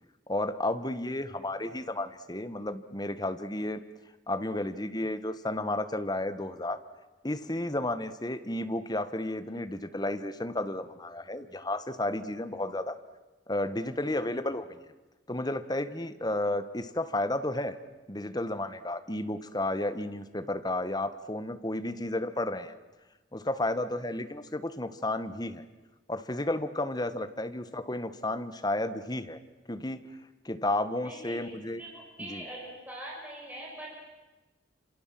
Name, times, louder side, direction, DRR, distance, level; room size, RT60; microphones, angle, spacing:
voice 1, 0.3-3.8 4.3-6.8 7.2-13.0 13.5-14.8 15.3-17.7 18.1-22.7 23.3-25.7 26.1-29.4 29.7-30.0 30.4-31.8 32.2-32.5, left 1 dB, 20° left, 10 dB, 1.4 m, -32 dB
voice 2, 31.0-33.9, right 1 dB, 10° right, -3 dB, 6.3 m, -43 dB
28.0 x 27.0 x 7.7 m, 1.1 s
head